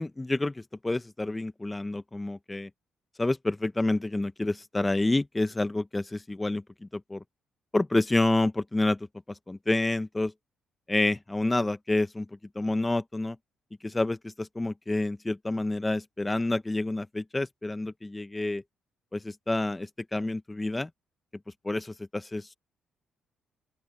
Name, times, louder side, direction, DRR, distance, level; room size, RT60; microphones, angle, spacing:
voice 1, 0.0-2.7 3.2-6.6 6.9-7.2 7.7-9.0 9.5-10.3 10.9-12.3 12.6-13.4 13.8-18.6 19.1-20.9 21.6-22.5, left 2 dB, 15° left, 0.9 m, -28 dB
open air
cardioid pair, 90°, 0 cm